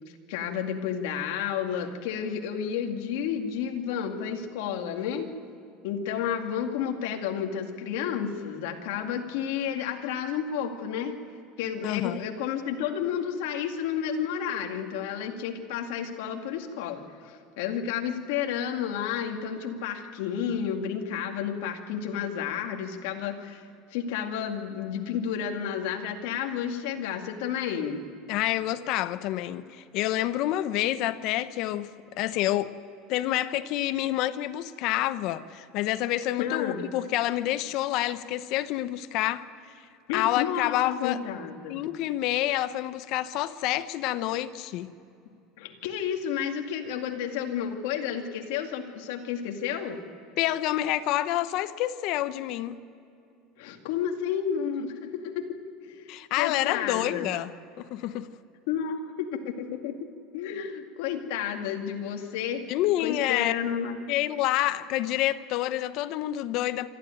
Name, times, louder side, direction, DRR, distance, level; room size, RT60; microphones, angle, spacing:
voice 1, 0.3-5.3 5.8-11.1 11.6-23.6 23.9-28.1 36.4-36.9 40.1-41.8 45.6-50.0 53.6-55.5 55.8-57.3 58.7-60.1 60.3-62.7 63.0-64.0, left 8 dB, 80° left, 2.3 m, -31 dB
voice 2, 11.8-12.2 28.3-32.7 33.1-39.5 40.1-41.2 41.7-44.9 50.4-52.8 56.1-57.5 57.8-58.3 62.7-63.5 64.1-66.9, left 14 dB, 55° left, 0.9 m, -28 dB
26.0 x 13.0 x 9.1 m
supercardioid pair, 140°, 0 cm